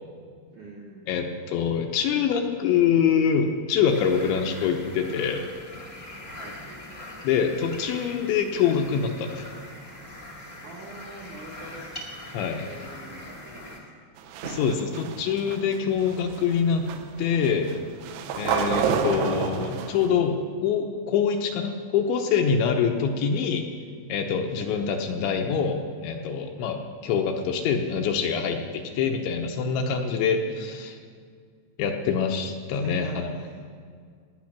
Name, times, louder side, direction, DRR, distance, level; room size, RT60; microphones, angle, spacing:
voice 1, 0.5-1.1 6.3-6.6 10.6-11.9 12.6-14.1 28.9-29.4 32.7-33.6, right 2 dB, 60° right, -4 dB, 2.1 m, -45 dB
voice 2, 1.1-5.4 7.2-9.5 12.3-12.7 14.4-16.9 17.2-17.7 18.3-20.4 20.6-23.7 24.1-31.0 31.8-33.3, left 6 dB, 75° left, 3 dB, 3.0 m, -25 dB
sound 1, 3.8-13.8, left 1 dB, 45° left, 1.0 m, -42 dB
sound 2, 14.2-20.1, right 7 dB, 80° right, 2.5 m, -30 dB
18.0 x 9.7 x 6.0 m, 2.1 s
omnidirectional pair, 5.7 m